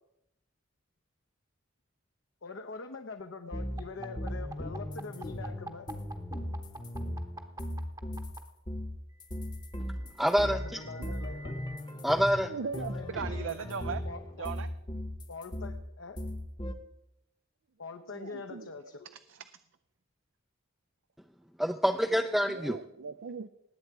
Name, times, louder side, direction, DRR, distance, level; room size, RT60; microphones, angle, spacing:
voice 1, 2.4-5.9 10.3-11.5 12.8-13.6 14.1-14.5 15.3-16.2 17.8-19.1, left 4 dB, 70° left, 7 dB, 0.8 m, -44 dB
sound 1, 3.5-8.4 8.7-15.8 16.2-16.7, left 1 dB, 20° left, 0.9 m, -38 dB
sound 2, 3.8-8.4 9.5-11.8, right 3 dB, 20° right, 0.9 m, -46 dB
voice 2, 10.2-10.6 12.0-12.5 21.6-22.8, equal, ahead, 6 dB, 0.4 m, -26 dB
voice 3, 12.5-14.0 14.4-14.7 18.1-18.7 19.3-19.5 22.5-23.5, right 5 dB, 65° right, 12 dB, 0.5 m, -38 dB
19.0 x 7.9 x 4.7 m, 0.84 s
head